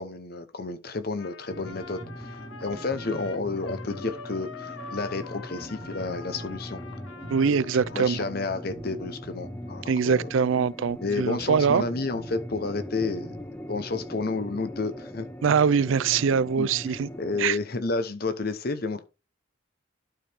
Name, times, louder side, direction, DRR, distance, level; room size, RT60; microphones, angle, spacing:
voice 1, 0.0-6.8 7.4-10.3 11.0-13.3 13.7-15.3 16.6-16.7 17.2-19.0, left 3 dB, 50° left, 0.8 m, -31 dB
Trumpet, 1.2-8.5, left 3 dB, 90° left, 1.0 m, -44 dB
sound 1, 1.5-17.5, equal, 10° left, 0.7 m, -41 dB
sound 2, 1.5-4.1 4.4-4.5 5.1-5.2 5.6-9.9 10.2-10.3 10.9-11.0 11.4-13.5, right 1 dB, 30° right, 1.4 m, -44 dB
voice 2, 7.3-8.2 9.9-11.8 15.4-17.1 17.4-17.6, right 6 dB, 80° right, 0.4 m, -23 dB
11.5 x 4.9 x 3.5 m
head